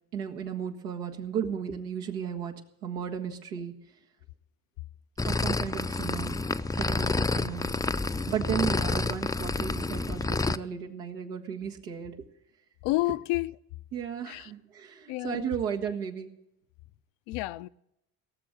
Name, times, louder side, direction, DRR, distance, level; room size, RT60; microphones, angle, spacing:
voice 1, 0.1-2.5 2.8-3.7 5.2-6.4 6.7-7.7 8.3-12.2 13.9-16.3, right 8 dB, 90° right, 1.7 m, -34 dB
sound 1, 5.2-10.6, left 3 dB, 10° left, 0.4 m, -29 dB
voice 2, 12.8-13.5 14.3-14.5 15.1-15.5 17.3-17.7, left 19 dB, 70° left, 0.6 m, -30 dB
17.5 x 6.9 x 9.0 m
hypercardioid pair, 60°, 45 cm